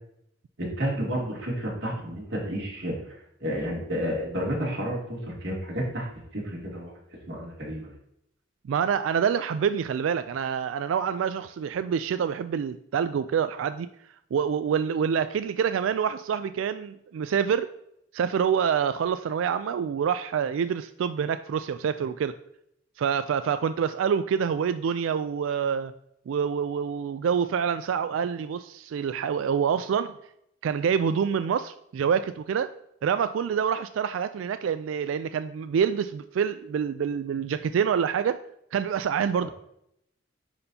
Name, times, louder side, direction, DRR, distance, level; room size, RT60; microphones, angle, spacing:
voice 1, 0.6-6.1 6.3-6.9 7.3-7.9 39.4-39.5, equal, 60° right, -4 dB, 2.4 m, -31 dB
voice 2, 8.7-13.9 14.3-17.7 18.1-22.4 23.0-25.9 26.3-30.1 30.6-32.7 33.0-38.4 38.7-39.5, right 7 dB, 85° right, 12 dB, 0.3 m, -26 dB
10.5 x 4.3 x 2.7 m, 0.75 s
head